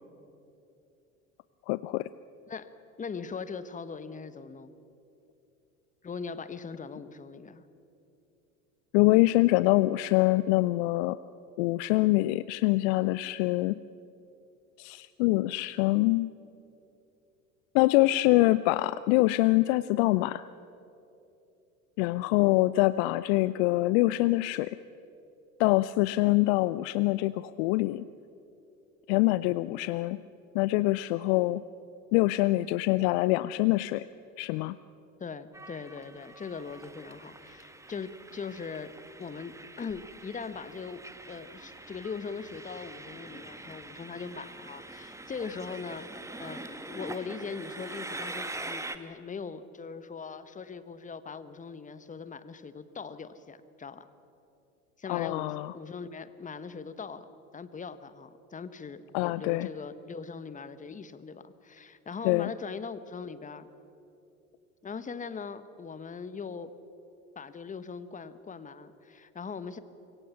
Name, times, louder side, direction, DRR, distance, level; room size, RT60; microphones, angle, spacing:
voice 1, 1.7-2.1 8.9-11.2 11.6-13.8 14.8-16.3 17.7-20.5 22.0-24.7 25.6-28.0 29.1-30.2 30.5-31.6 32.1-34.1 34.4-34.8 55.1-55.7 59.1-59.7 62.2-62.5, left 19 dB, 50° left, 16 dB, 0.6 m, -25 dB
voice 2, 3.0-4.7 6.0-7.6 35.2-38.9 39.2-46.1 46.4-54.1 55.0-63.7 64.8-66.7 67.3-69.8, left 5 dB, 20° left, 13 dB, 1.2 m, -40 dB
Train, 35.5-49.0, right 2 dB, 5° right, 1.2 m, -44 dB
25.5 x 22.5 x 5.8 m, 2.8 s
figure-of-eight pair, 70°, 41 cm